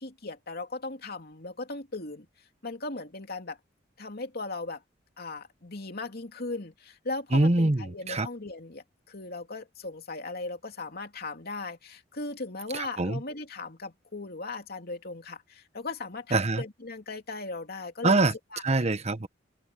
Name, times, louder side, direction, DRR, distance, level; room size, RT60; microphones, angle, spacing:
voice 1, 0.0-2.3 2.6-3.6 4.0-4.8 5.2-18.6, left 3 dB, 55° left, 2.9 m, -38 dB
voice 2, 7.3-8.3 12.7-13.2 16.3-16.6 18.0-18.3 18.6-19.3, right 2 dB, 35° right, 1.1 m, -24 dB
open air
head